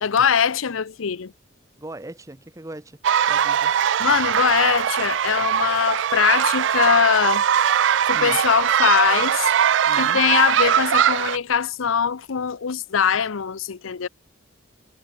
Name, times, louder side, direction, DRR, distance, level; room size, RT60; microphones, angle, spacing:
voice 1, 0.0-1.3 4.0-7.4 8.1-9.5 9.9-14.1, left 7 dB, 85° left, 0.7 m, -21 dB
voice 2, 1.8-3.0 3.3-3.7 8.1-8.4 9.8-10.2, right 1 dB, 15° right, 0.8 m, -39 dB
sound 1, 3.0-11.4, right 9 dB, 65° right, 0.4 m, -21 dB
head